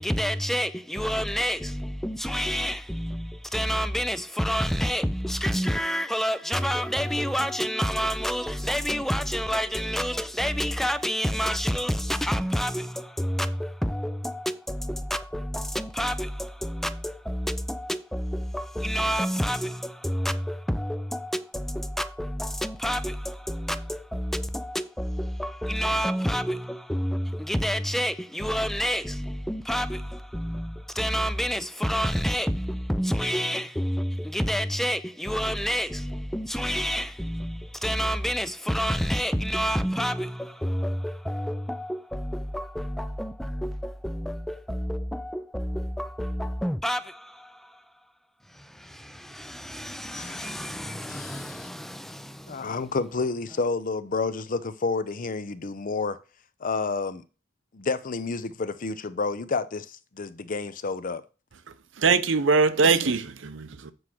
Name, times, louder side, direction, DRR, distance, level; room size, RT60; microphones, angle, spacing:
voice 1, 0.0-47.9 48.5-52.8, equal, ahead, 0.4 m, -29 dB
voice 2, 50.2-50.6 51.1-51.7 52.5-56.2 56.6-57.2 57.7-61.2, left 4 dB, 45° left, 0.6 m, -30 dB
voice 3, 62.0-63.9, right 4 dB, 80° right, 0.8 m, -22 dB
7.8 x 4.9 x 6.1 m
head